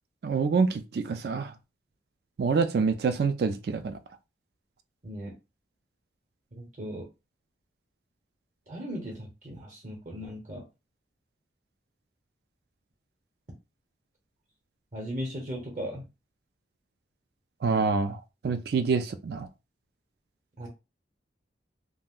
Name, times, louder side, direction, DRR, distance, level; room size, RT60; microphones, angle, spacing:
voice 1, 0.2-1.5 2.4-4.0 17.6-19.5, right 4 dB, 60° right, 0.3 m, -26 dB
voice 2, 6.5-7.1 8.7-10.6 14.9-16.0 20.6-20.7, equal, 40° right, 0.8 m, -37 dB
2.5 x 2.1 x 3.5 m
head